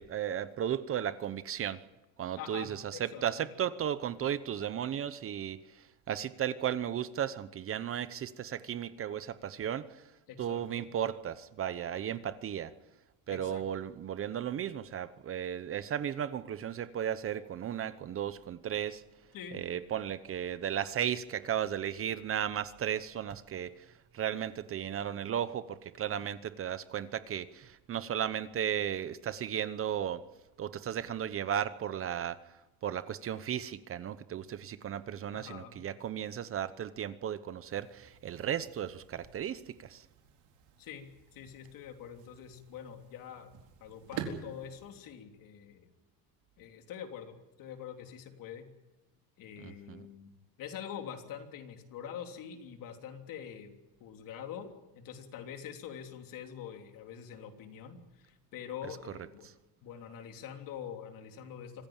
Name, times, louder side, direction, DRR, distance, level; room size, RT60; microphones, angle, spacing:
voice 1, 0.0-1.8 2.2-5.6 6.1-9.9 10.4-12.7 13.3-19.0 19.5-23.7 24.1-30.2 30.6-32.4 32.8-40.0 49.6-50.0, right 9 dB, 35° right, 14 dB, 0.9 m, -35 dB
voice 2, 2.4-3.4 10.3-10.9 13.3-13.6 19.3-19.7 35.3-35.8 40.8-43.5 43.8-45.9 46.6-48.7 49.4-50.3 50.6-53.7 54.0-59.5 59.8-61.9, left 8 dB, 55° left, 4 dB, 3.3 m, -45 dB
sound 1, 37.6-45.0, right 7 dB, 80° right, 4.2 m, -48 dB
25.5 x 15.5 x 8.9 m, 1.1 s
cardioid pair, 145°, 39 cm